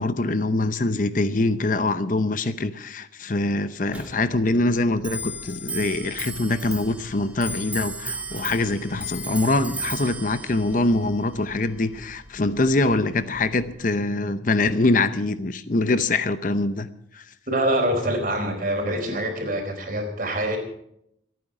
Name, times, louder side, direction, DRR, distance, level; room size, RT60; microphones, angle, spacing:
voice 1, 0.0-16.9 17.1-17.2, left 2 dB, 45° left, 0.7 m, -24 dB
Clock, 3.9-13.8, right 1 dB, 10° right, 2.2 m, -36 dB
voice 2, 17.5-20.6, right 1 dB, 45° right, 4.3 m, -25 dB
26.5 x 9.4 x 5.0 m
head